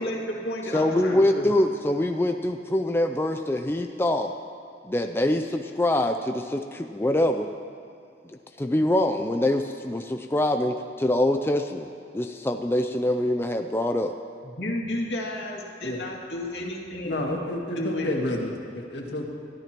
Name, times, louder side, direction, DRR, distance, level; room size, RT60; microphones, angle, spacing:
voice 1, 0.0-1.5 14.6-17.4 17.8-18.1, left 1 dB, 70° left, -2 dB, 2.4 m, -32 dB
voice 2, 0.7-4.3 4.8-7.5 8.6-11.9 12.1-14.1, left 1 dB, 15° left, 5 dB, 0.4 m, -24 dB
voice 3, 17.0-19.2, left 1 dB, 85° left, -1 dB, 2.1 m, -30 dB
23.0 x 13.5 x 3.0 m, 2.4 s
head